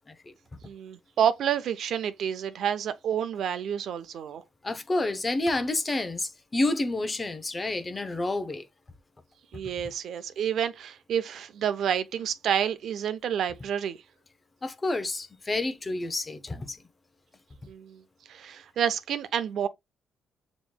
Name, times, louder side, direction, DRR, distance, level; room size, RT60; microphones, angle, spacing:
voice 1, 0.6-4.4 9.5-14.0 17.7-18.0 18.3-19.7, right 9 dB, 70° right, 0.6 m, -29 dB
voice 2, 4.6-8.6 14.6-16.8, left 2 dB, 25° left, 0.7 m, -29 dB
6.9 x 3.1 x 2.2 m
cardioid pair, 90°, 0 cm